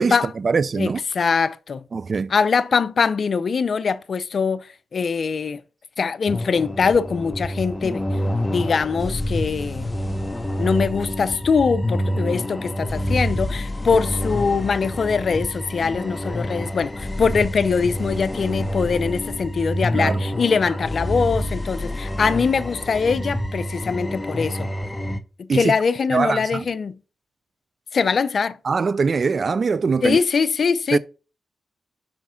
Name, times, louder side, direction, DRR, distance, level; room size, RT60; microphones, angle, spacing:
voice 1, 0.0-1.0 1.9-2.3 13.9-14.0 19.9-20.2 25.5-25.7 26.1-26.6 28.6-30.2 30.9-31.0, right 5 dB, 55° right, 0.4 m, -22 dB
voice 2, 0.8-1.8 2.3-4.7 4.9-5.6 6.0-8.0 8.5-9.9 10.6-24.7 25.4-27.0 27.9-28.6 30.0-31.0, left 5 dB, 60° left, 0.5 m, -22 dB
sound 1, 6.3-25.2, equal, 20° left, 1.0 m, -27 dB
5.9 x 5.1 x 5.7 m
cardioid pair, 55°, 0 cm